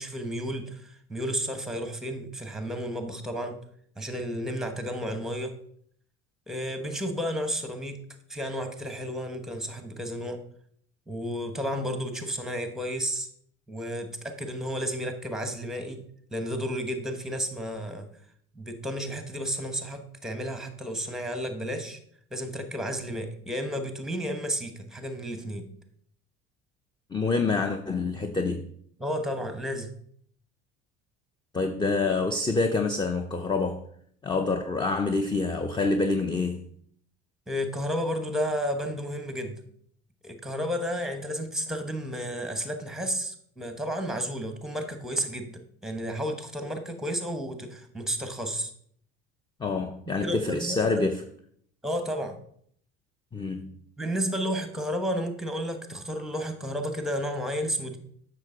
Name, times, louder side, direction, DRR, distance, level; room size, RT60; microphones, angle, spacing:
voice 1, 0.0-3.6 4.0-5.5 6.5-8.0 8.3-10.4 11.1-13.3 13.7-16.0 16.3-18.1 18.5-22.0 22.3-25.7 29.0-29.9 37.5-39.6 40.2-48.7 50.2-51.1 51.8-52.4 54.0-58.0, equal, ahead, 1.1 m, -32 dB
voice 2, 27.1-28.7 31.5-33.8 34.2-36.6 49.6-51.2 53.3-53.7, left 3 dB, 15° left, 0.5 m, -27 dB
7.9 x 5.9 x 3.9 m
supercardioid pair, 95°, 32 cm